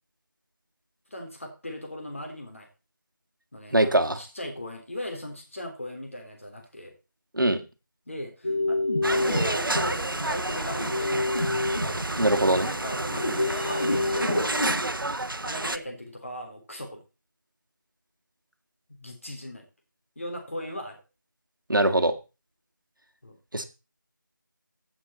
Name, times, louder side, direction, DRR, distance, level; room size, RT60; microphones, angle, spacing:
voice 1, 1.1-2.7 3.5-6.9 8.1-11.4 12.4-14.3 15.4-17.0 18.9-19.7 20.1-21.0 23.2-23.4, left 1 dB, 40° left, 3 dB, 3.2 m, -38 dB
voice 2, 3.7-4.2 7.3-7.6 12.2-12.7 21.7-22.1 23.5-23.6, right 1 dB, 75° right, 7 dB, 1.9 m, -22 dB
sound 1, 8.4-14.8, left 2 dB, 25° left, 2.4 m, -28 dB
sound 2, 9.0-15.8, right 2 dB, 90° right, 0.9 m, -30 dB
15.5 x 6.1 x 4.2 m, 0.30 s
figure-of-eight pair, 180°, 11 cm